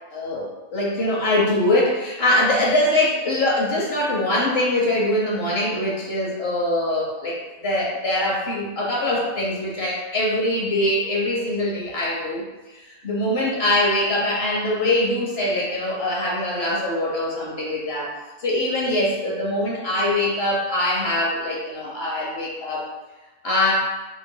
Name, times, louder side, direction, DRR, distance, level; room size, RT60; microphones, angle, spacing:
voice 1, 0.1-18.1 18.4-22.8 23.4-23.9, left 1 dB, 45° left, -4 dB, 1.0 m, -23 dB
5.0 x 3.8 x 2.2 m, 1.1 s
omnidirectional pair, 1.9 m